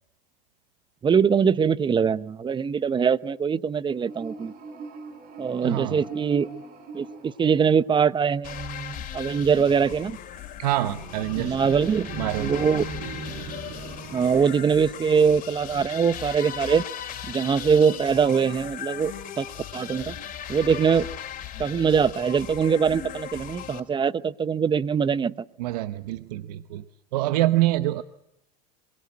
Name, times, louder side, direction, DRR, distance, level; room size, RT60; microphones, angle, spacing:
voice 1, 1.0-4.5 5.4-6.5 6.9-10.1 11.4-12.1 12.4-12.9 14.1-16.8 17.3-19.5 19.7-20.1 20.5-21.1 21.6-25.3, right 6 dB, 25° right, 15 dB, 0.9 m, -22 dB
sound 1, 3.9-8.2 10.8-15.8, right 4 dB, 50° right, 4.0 m, -40 dB
voice 2, 5.6-6.0 10.6-11.7 12.2-12.6 25.6-26.8 27.1-28.0, right 16 dB, 70° right, 12 dB, 0.9 m, -26 dB
sound 2, 8.4-23.8, left 10 dB, 40° left, 4.1 m, -38 dB
27.0 x 21.5 x 8.7 m, 0.84 s
hypercardioid pair, 90°, 21 cm